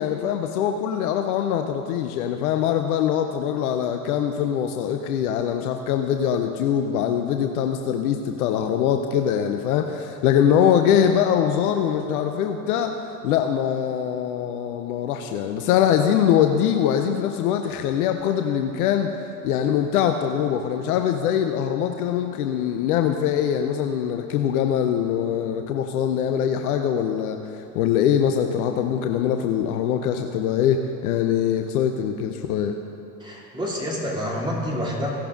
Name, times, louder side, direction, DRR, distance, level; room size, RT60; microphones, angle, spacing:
voice 1, 0.0-19.1 19.4-32.8, left 9 dB, 65° left, 6 dB, 0.7 m, -23 dB
voice 2, 33.2-35.1, equal, 10° right, -4 dB, 2.7 m, -28 dB
16.0 x 11.5 x 2.5 m, 2.8 s
figure-of-eight pair, 75°, 48 cm